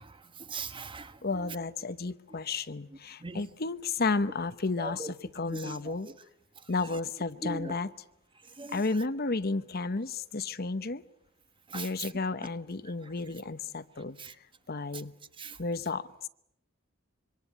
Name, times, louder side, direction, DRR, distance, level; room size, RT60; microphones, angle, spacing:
voice 1, 0.0-1.2 3.2-3.5 4.8-5.1 5.5-5.9 7.4-7.7 8.6-8.8 11.7-12.1 14.2-14.3 15.4-15.6, right 3 dB, 25° right, 1.3 m, -40 dB
voice 2, 1.2-6.1 6.7-7.9 8.7-11.0 11.7-14.2 14.7-15.1 15.6-16.3, left 3 dB, 50° left, 1.0 m, -32 dB
26.0 x 25.0 x 8.7 m
head